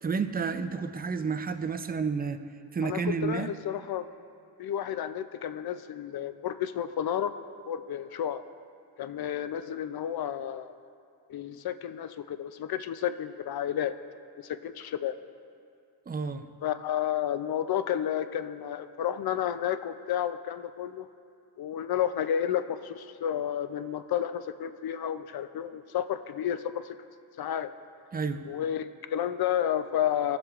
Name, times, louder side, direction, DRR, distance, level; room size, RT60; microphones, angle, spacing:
voice 1, 0.0-2.4 2.7-3.5 16.1-16.5 28.1-28.4, right 5 dB, 20° right, 9 dB, 0.4 m, -30 dB
voice 2, 2.8-4.1 4.6-7.3 7.7-8.5 9.0-10.7 11.3-13.9 14.4-15.2 16.6-21.1 21.6-27.0 27.4-27.7 28.5-30.4, left 10 dB, 50° left, 11 dB, 0.5 m, -31 dB
15.5 x 6.3 x 2.4 m, 2.3 s
cardioid pair, 70°, 49 cm